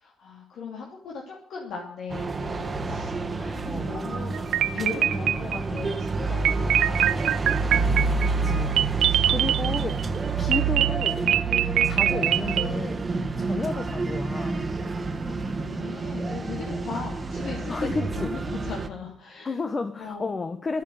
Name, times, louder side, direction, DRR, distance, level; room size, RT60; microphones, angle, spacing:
voice 1, 0.0-4.4 4.7-7.6 7.8-8.4 8.9-9.2 10.1-10.2 13.3-13.5 15.1-19.5 20.0-20.3, left 5 dB, 75° left, -1 dB, 2.8 m, -38 dB
sound 1, 2.1-18.9, right 4 dB, 30° right, 1.4 m, -28 dB
voice 2, 3.7-4.0 8.1-8.8 9.3-11.2 11.8-13.1 13.4-14.6 16.6-17.0 17.7-18.3 19.4-20.8, left 3 dB, 35° left, 9 dB, 1.0 m, -32 dB
sound 2, 4.3-5.8 6.4-10.0 10.5-12.7, right 11 dB, 75° right, 0.5 m, -23 dB
12.0 x 9.0 x 9.2 m, 0.63 s
cardioid pair, 90°, 0 cm